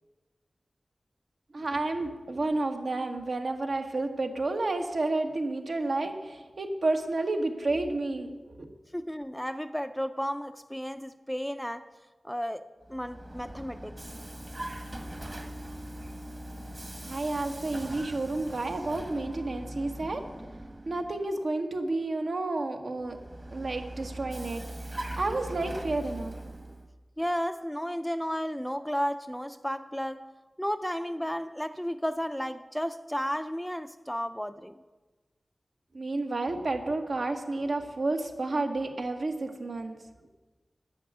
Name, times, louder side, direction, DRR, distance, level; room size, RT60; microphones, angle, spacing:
voice 1, 1.5-8.7 17.0-20.2 20.8-23.2 23.5-24.6 25.2-26.3 35.9-39.9, right 2 dB, 70° right, 4 dB, 1.4 m, -30 dB
voice 2, 8.9-11.8 12.2-14.0 27.2-30.3 30.6-34.8, equal, 5° left, 10 dB, 0.5 m, -33 dB
Vehicle, 12.8-21.3 23.0-26.9, right 1 dB, 30° right, 1.3 m, -41 dB
11.0 x 7.0 x 9.3 m, 1.2 s
wide cardioid pair, 90°, 0 cm